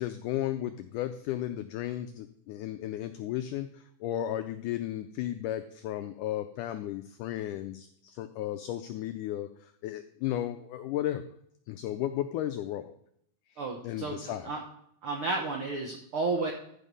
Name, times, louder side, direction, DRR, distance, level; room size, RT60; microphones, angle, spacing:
voice 1, 0.0-11.3 11.7-12.9 13.8-14.5, left 12 dB, 85° left, 9 dB, 1.8 m, -34 dB
voice 2, 13.6-14.6 15.0-16.5, right 3 dB, 85° right, 1 dB, 1.2 m, -32 dB
13.5 x 5.1 x 5.4 m, 0.71 s
omnidirectional pair, 4.2 m